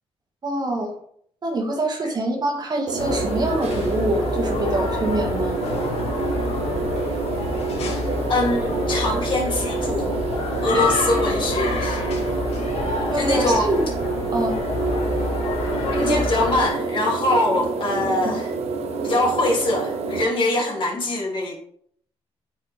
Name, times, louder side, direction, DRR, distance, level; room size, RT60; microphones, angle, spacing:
voice 1, 0.4-0.9 1.4-5.6 10.7-10.8 13.1-13.8 14.3-14.6 16.1-16.2 18.2-18.3, right 2 dB, 40° right, 1 dB, 1.7 m, -25 dB
sound 1, 2.9-20.2, right 4 dB, 75° right, 1.0 m, -27 dB
sound 2, 3.0-16.7, left 3 dB, 70° left, 1.7 m, -28 dB
voice 2, 8.3-10.1 10.6-12.0 13.1-13.7 15.9-18.5 19.0-21.6, left 2 dB, 50° left, -2 dB, 2.5 m, -23 dB
8.5 x 4.8 x 3.3 m, 0.64 s
cardioid pair, 110°, 11 cm